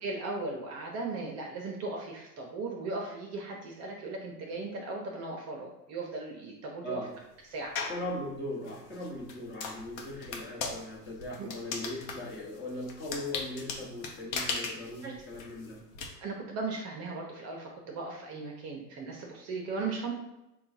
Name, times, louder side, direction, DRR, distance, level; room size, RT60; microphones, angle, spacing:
voice 1, 0.0-7.0 7.5-7.8 11.4-11.5 15.0-15.1 16.2-20.1, right 3 dB, 30° right, 0 dB, 0.7 m, -37 dB
sound 1, 7.7-8.1 8.6-16.1, left 4 dB, 55° left, 0.9 m, -38 dB
voice 2, 7.9-15.8, left 1 dB, 20° left, -3 dB, 1.1 m, -39 dB
3.7 x 2.3 x 4.2 m, 0.92 s
hypercardioid pair, 110°, 49 cm